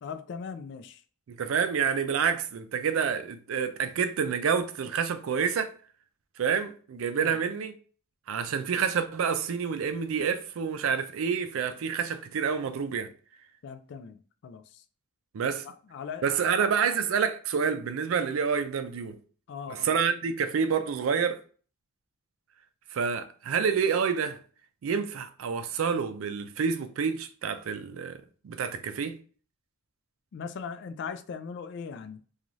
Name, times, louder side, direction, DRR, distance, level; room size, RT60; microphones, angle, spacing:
voice 1, 0.0-1.0 7.2-7.4 13.6-14.8 15.5-16.6 19.5-20.0 30.3-32.2, left 6 dB, 60° left, 0.3 m, -40 dB
voice 2, 1.3-5.7 6.4-7.7 8.3-13.1 15.3-15.7 16.2-19.2 19.7-21.4 22.9-24.4 24.8-29.2, right 6 dB, 85° right, 0.4 m, -28 dB
3.0 x 2.3 x 2.5 m
head